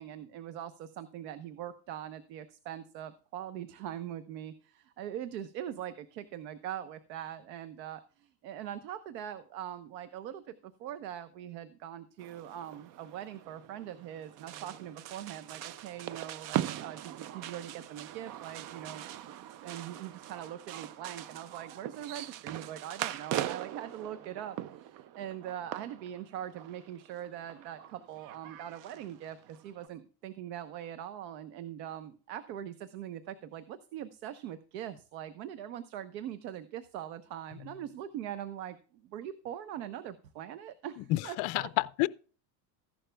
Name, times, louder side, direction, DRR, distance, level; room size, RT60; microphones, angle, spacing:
voice 1, 0.0-19.3 19.6-41.7, right 10 dB, 80° right, 1.1 m, -42 dB
sound 1, 12.2-29.9, right 12 dB, 40° right, 0.5 m, -41 dB
voice 2, 41.1-42.1, left 19 dB, 50° left, 0.5 m, -29 dB
15.0 x 11.5 x 2.3 m
supercardioid pair, 140°, 50 cm